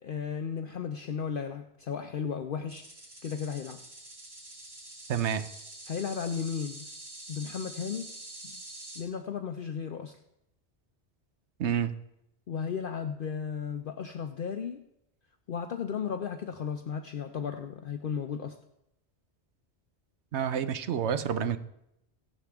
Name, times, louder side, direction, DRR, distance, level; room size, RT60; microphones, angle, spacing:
voice 1, 0.0-2.8 3.2-3.8 5.9-6.9 7.3-8.1 9.0-10.2 12.5-14.8 15.5-18.6, left 7 dB, 55° left, 6 dB, 0.8 m, -34 dB
sound 1, 2.7-9.0, right 1 dB, 65° right, 2.7 m, -46 dB
voice 2, 5.1-5.4 11.6-11.9 20.3-21.6, right 8 dB, 85° right, 11 dB, 1.0 m, -28 dB
15.5 x 11.5 x 3.5 m, 0.82 s
omnidirectional pair, 1.1 m